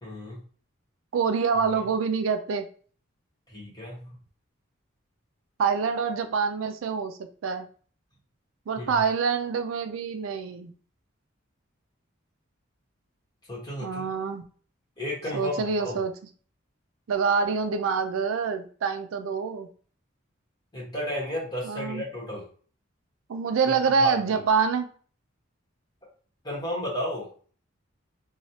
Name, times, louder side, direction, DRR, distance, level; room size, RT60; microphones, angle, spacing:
voice 1, 0.0-0.4 3.5-4.1 8.8-9.0 13.5-14.1 15.0-16.0 20.7-22.4 24.0-24.2 26.4-27.3, left 1 dB, 20° left, -4 dB, 1.3 m, -33 dB
voice 2, 1.1-2.7 5.6-7.7 8.7-10.7 13.8-14.4 15.3-16.1 17.1-19.7 21.6-22.0 23.3-24.9, right 5 dB, 85° right, 8 dB, 0.4 m, -26 dB
3.0 x 2.3 x 2.7 m, 0.43 s
head